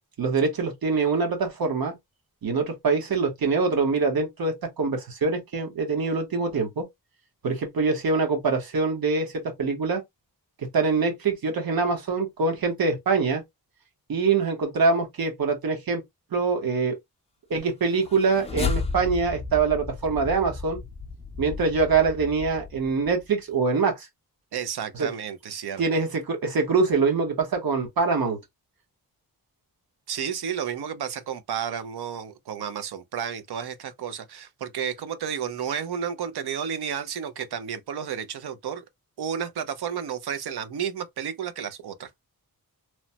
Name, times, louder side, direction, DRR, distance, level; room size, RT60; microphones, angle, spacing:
voice 1, 0.2-1.9 2.4-6.9 7.4-10.0 10.7-13.4 14.1-16.0 16.3-17.0 17.5-20.8 21.4-24.1 24.9-25.1 25.8-28.4, right 4 dB, 70° right, 1.1 m, -24 dB
sound 1, 17.9-23.3, left 4 dB, 15° left, 0.4 m, -33 dB
voice 2, 24.5-25.8 30.1-38.8 39.2-42.1, right 8 dB, 90° right, 0.6 m, -32 dB
3.0 x 2.1 x 2.8 m
wide cardioid pair, 170°, 38 cm